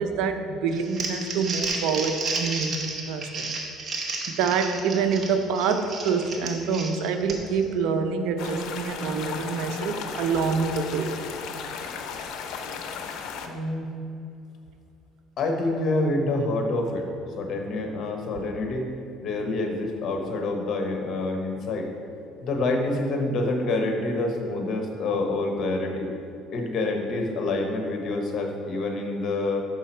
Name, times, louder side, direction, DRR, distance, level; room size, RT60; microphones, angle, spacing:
voice 1, 0.0-3.5 4.3-11.1, right 5 dB, 75° right, 7 dB, 0.6 m, -26 dB
Crumpling crinkling, 0.7-7.6, right 3 dB, 35° right, 1.0 m, -32 dB
sound 1, 8.4-13.5, left 6 dB, 70° left, 0.6 m, -35 dB
voice 2, 13.5-13.9 15.4-17.1 17.4-18.9 19.2-21.9 22.4-26.1 26.5-29.6, left 2 dB, 50° left, 3 dB, 1.0 m, -27 dB
6.2 x 5.6 x 4.4 m, 2.7 s
cardioid pair, 125°, 0 cm